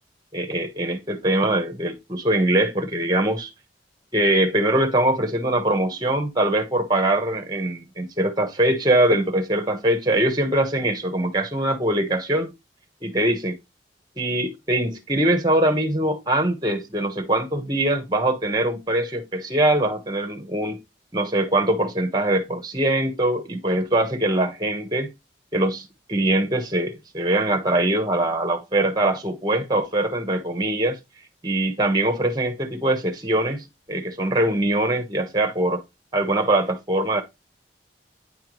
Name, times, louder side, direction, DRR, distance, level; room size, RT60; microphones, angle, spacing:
voice 1, 0.3-3.5 4.1-12.5 13.0-13.6 14.2-20.8 21.1-25.1 25.5-31.0 31.4-35.8 36.1-37.2, right 1 dB, 20° right, 1.3 m, -22 dB
9.9 x 3.5 x 3.1 m
head